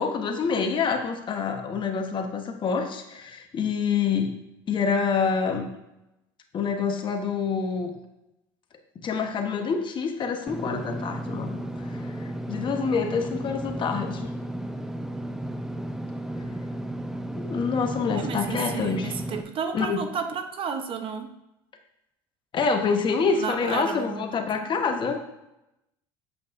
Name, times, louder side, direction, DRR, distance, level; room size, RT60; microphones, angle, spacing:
voice 1, 0.0-4.3 4.7-5.7 6.5-7.9 9.0-11.6 11.9-14.3 17.4-19.1 19.7-20.0 22.5-25.2, left 5 dB, 40° left, 4 dB, 1.1 m, -27 dB
Engine / Mechanisms, 10.5-19.4, right 1 dB, 5° right, 0.6 m, -33 dB
voice 2, 18.1-21.3 23.3-24.4, right 6 dB, 45° right, 7 dB, 0.9 m, -32 dB
8.4 x 7.6 x 2.6 m, 0.90 s
supercardioid pair, 90°, 13 cm